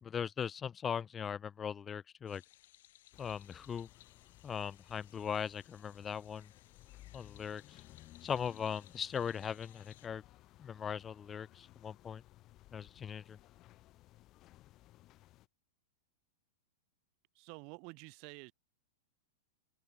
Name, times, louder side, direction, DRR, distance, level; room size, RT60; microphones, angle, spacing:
voice 1, 0.0-2.4 3.2-3.9 4.4-6.5 7.1-7.8 8.2-10.2 10.6-12.2 12.7-13.4, left 7 dB, 20° left, 0.5 m, -39 dB
sound 1, 2.3-10.1, left 14 dB, 65° left, 3.1 m, -63 dB
sound 2, 3.1-15.5, left 16 dB, 35° left, 5.4 m, -60 dB
voice 2, 17.3-18.5, right 35 dB, 45° right, 1.4 m, -50 dB
hypercardioid pair, 130°, 0 cm